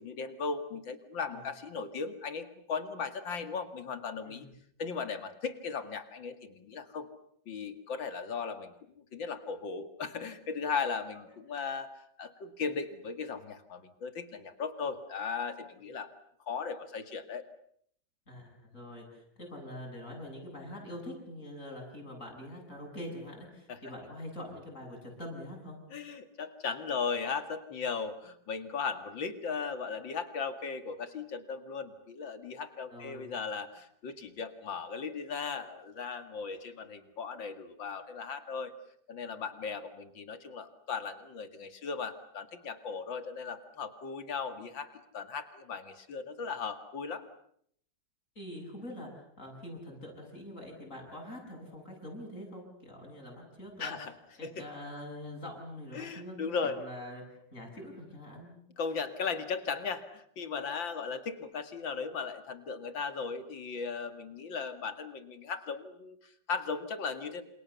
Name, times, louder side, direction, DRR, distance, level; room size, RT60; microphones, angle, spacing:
voice 1, 0.0-4.5 4.8-7.1 7.5-16.1 16.5-17.5 23.7-23.8 25.9-38.7 39.1-47.2 53.8-54.1 54.4-54.7 55.9-56.8 58.8-67.4, left 5 dB, 80° left, 9 dB, 2.8 m, -37 dB
voice 2, 18.3-25.8 32.9-33.3 48.4-53.9 54.4-56.4 56.6-58.6, left 1 dB, 40° left, 1 dB, 8.1 m, -44 dB
28.0 x 28.0 x 7.0 m, 0.68 s
omnidirectional pair, 2.0 m